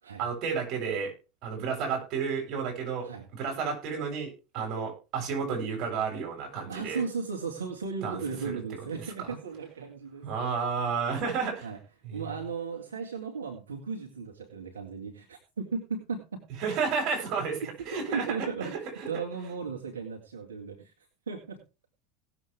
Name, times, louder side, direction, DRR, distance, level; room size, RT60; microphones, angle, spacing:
voice 1, 0.2-1.1 1.4-7.0 8.0-8.2 8.4-8.6 9.2-9.4 10.2-11.7 12.0-12.3 16.6-18.3 18.6-19.1, right 5 dB, 50° right, 2 dB, 7.7 m, -32 dB
voice 2, 6.7-10.6 11.6-11.8 12.1-16.5 17.9-18.8 19.1-21.6, right 5 dB, 90° right, 1 dB, 2.0 m, -36 dB
18.0 x 7.7 x 3.5 m, 0.31 s
hypercardioid pair, 85°, 0 cm